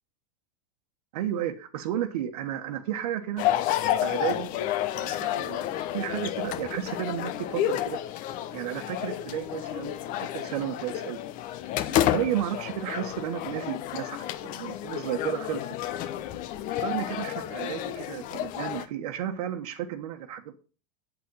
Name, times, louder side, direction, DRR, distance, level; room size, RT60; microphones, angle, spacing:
voice 1, 1.1-3.4 4.0-4.5 5.0-8.0 8.5-10.0 10.3-11.2 12.0-15.7 16.8-20.5, right 11 dB, 75° right, 6 dB, 1.3 m, -33 dB
sound 1, 3.4-18.9, left 12 dB, 40° left, 0.9 m, -30 dB
8.3 x 8.1 x 5.5 m, 0.36 s
supercardioid pair, 140°, 20 cm